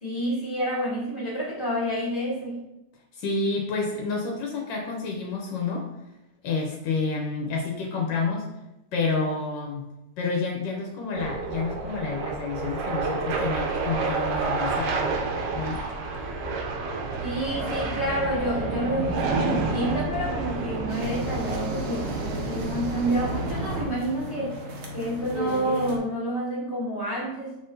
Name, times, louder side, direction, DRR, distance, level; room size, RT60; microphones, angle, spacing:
voice 1, 0.0-2.6 17.2-24.6 24.9-27.6, right 1 dB, 35° left, -11 dB, 1.9 m, -29 dB
voice 2, 3.1-5.9 6.4-8.4 8.9-9.9 10.2-15.1 15.5-15.8, left 4 dB, 85° left, -1 dB, 1.4 m, -29 dB
sound 1, 11.1-23.9, right 3 dB, 90° right, 1.4 m, -29 dB
sound 2, 20.9-26.0, equal, 55° right, 1.0 m, -35 dB
5.5 x 3.6 x 2.6 m, 0.93 s
omnidirectional pair, 1.9 m